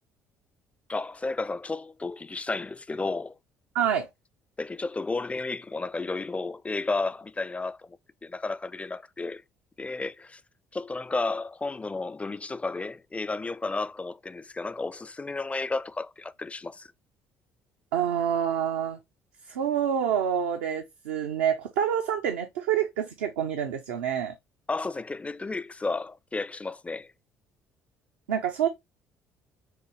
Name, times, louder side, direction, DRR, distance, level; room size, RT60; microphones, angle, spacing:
voice 1, 0.9-3.4 4.6-8.0 8.2-9.4 9.8-10.4 10.7-16.9 24.7-27.1, left 3 dB, 15° left, 0.4 m, -32 dB
voice 2, 3.7-4.1 17.9-19.0 19.5-24.3 28.3-28.7, right 9 dB, 75° right, 0.6 m, -27 dB
6.5 x 2.6 x 3.0 m
hypercardioid pair, 55°, 8 cm